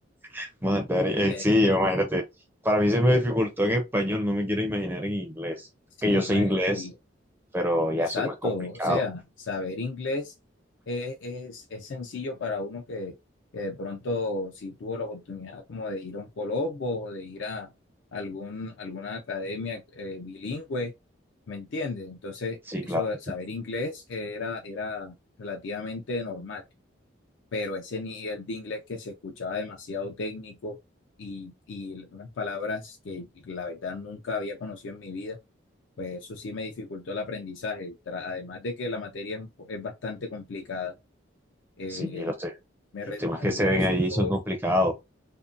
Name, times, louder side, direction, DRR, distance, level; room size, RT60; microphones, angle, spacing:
voice 1, 0.3-2.2 2.6-5.7 6.0-6.9 7.5-8.5 8.8-9.0 22.7-23.0 41.9-42.5 43.2-44.9, equal, 10° right, 0.4 m, -25 dB
voice 2, 6.0-6.9 8.0-9.2 9.5-10.3 10.9-13.2 13.5-17.7 18.1-20.9 21.5-26.6 27.5-30.8 31.2-35.4 36.0-41.0 41.8-42.3 42.9-44.3, left 3 dB, 75° left, 0.4 m, -34 dB
2.6 x 2.1 x 2.4 m
head